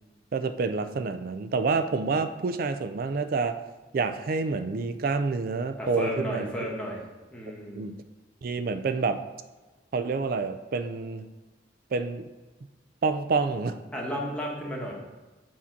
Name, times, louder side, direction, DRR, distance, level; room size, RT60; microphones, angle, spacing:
voice 1, 0.3-3.6 3.9-6.5 7.7-8.0 8.4-9.2 9.9-11.3 11.9-12.2 13.0-13.8, right 4 dB, 50° right, 9 dB, 0.4 m, -28 dB
voice 2, 5.8-7.0 7.3-7.9 13.9-14.9, equal, 5° left, -3 dB, 1.1 m, -33 dB
7.4 x 2.8 x 5.8 m, 1.2 s
head